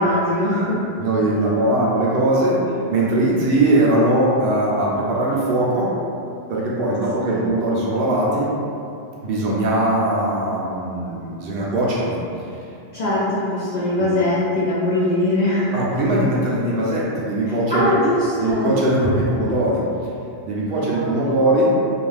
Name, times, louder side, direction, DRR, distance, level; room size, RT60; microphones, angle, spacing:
voice 1, 0.0-0.8 7.3-7.5 12.9-15.8 17.7-18.7 20.9-21.0, left 1 dB, 60° left, -9 dB, 0.4 m, -21 dB
voice 2, 1.0-2.6 2.9-5.9 6.5-8.5 9.2-12.2 14.0-14.2 15.7-17.9 18.4-19.8 20.4-21.7, right 1 dB, 65° right, -5 dB, 0.7 m, -20 dB
2.5 x 2.3 x 3.2 m, 2.6 s
omnidirectional pair, 1.1 m